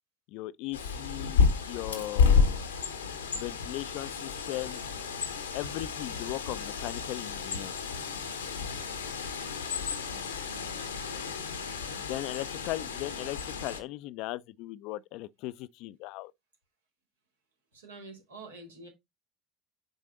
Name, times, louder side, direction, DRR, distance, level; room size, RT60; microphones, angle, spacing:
voice 1, 0.3-1.4 1.7-2.6 3.3-4.8 5.5-7.7 11.9-16.3, left 17 dB, 65° left, 0.3 m, -38 dB
Bird, 0.7-13.8, left 5 dB, 90° left, 0.9 m, -31 dB
voice 2, 9.9-11.7 17.7-18.9, right 3 dB, 85° right, 2.2 m, -49 dB
6.4 x 4.1 x 3.8 m
hypercardioid pair, 65°, 0 cm